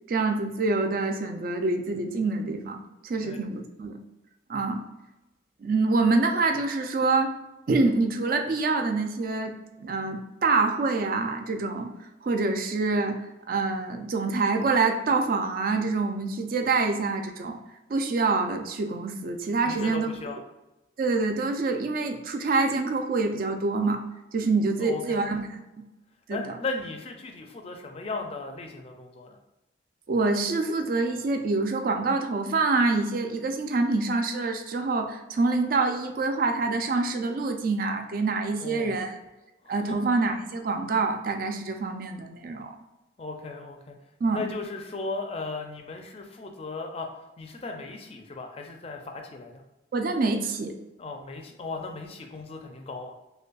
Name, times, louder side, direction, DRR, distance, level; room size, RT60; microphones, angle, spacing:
voice 1, 0.1-4.0 4.5-4.8 5.6-7.3 7.7-9.5 9.8-11.9 12.2-17.6 17.9-20.1 21.0-24.0 24.3-25.8 26.3-26.6 30.1-39.2 39.7-42.8 44.2-44.5 49.9-50.7, right 3 dB, 50° right, 5 dB, 0.4 m, -26 dB
voice 2, 19.6-20.4 24.8-25.4 26.3-29.4 38.6-39.0 39.6-40.0 43.2-43.9 44.2-47.1 47.4-49.6 51.0-53.1, left 3 dB, 30° left, 4 dB, 0.4 m, -36 dB
5.1 x 2.2 x 2.3 m, 0.98 s
head